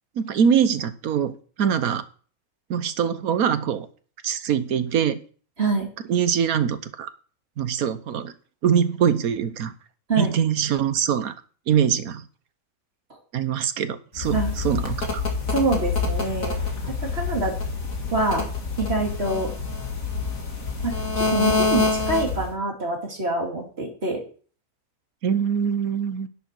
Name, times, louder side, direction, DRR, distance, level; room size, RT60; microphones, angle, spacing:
voice 1, 0.2-2.0 2.7-3.9 4.2-5.2 6.1-7.1 7.6-8.3 8.6-9.7 10.2-11.3 11.7-12.2 13.3-14.4 14.6-15.2 25.2-26.3, right 8 dB, 80° right, 12 dB, 1.4 m, -23 dB
voice 2, 5.6-5.9 10.1-10.3 14.3-14.5 15.5-16.6 17.0-17.6 18.1-18.5 18.8-19.5 20.8-24.2, right 2 dB, 45° right, 0 dB, 2.9 m, -25 dB
sound 1, 14.2-22.5, left 4 dB, 70° left, 2.5 m, -26 dB
11.0 x 10.5 x 4.5 m, 0.43 s
omnidirectional pair, 1.5 m